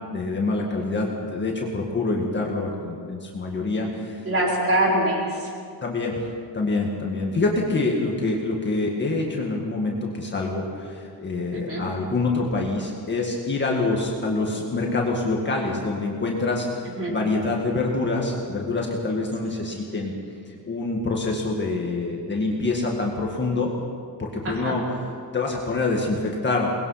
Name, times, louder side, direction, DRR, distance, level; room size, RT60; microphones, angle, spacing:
voice 1, 0.1-4.2 5.8-16.7 17.1-20.2 20.7-23.7 24.2-24.8 25.3-26.7, left 3 dB, 25° left, -1 dB, 1.9 m, -26 dB
voice 2, 4.2-5.6 11.5-11.9 17.0-17.2 24.4-24.8, right 1 dB, 30° right, -3 dB, 4.5 m, -24 dB
23.0 x 20.0 x 5.8 m, 2.3 s
cardioid pair, 180°, 43 cm